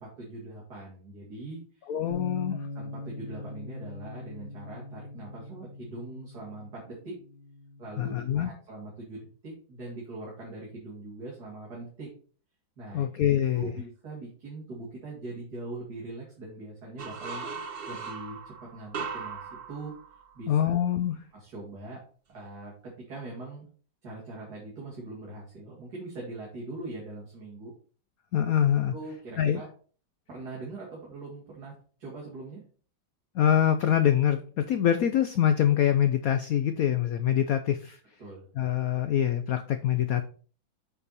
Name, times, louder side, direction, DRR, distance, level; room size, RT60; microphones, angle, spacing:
voice 1, 0.0-1.9 2.7-7.2 7.8-12.1 12.8-13.1 13.5-17.5 17.9-19.9 20.3-20.7 21.3-22.0 22.3-23.7 24.0-27.7 28.9-29.7 30.3-31.7 32.0-32.6 38.2-38.5, right 2 dB, 50° right, -5 dB, 2.7 m, -42 dB
voice 2, 1.9-2.6 8.0-8.5 12.9-13.7 20.5-21.2 28.3-28.9 29.4-29.6 33.3-38.0 38.6-40.2, left 10 dB, 90° left, 9 dB, 0.7 m, -25 dB
Bass guitar, 2.1-8.3, left 2 dB, 65° left, 2.2 m, -42 dB
sound 1, 17.0-20.6, right 5 dB, 85° right, 0.5 m, -38 dB
8.0 x 4.7 x 4.1 m, 0.42 s
omnidirectional pair, 2.2 m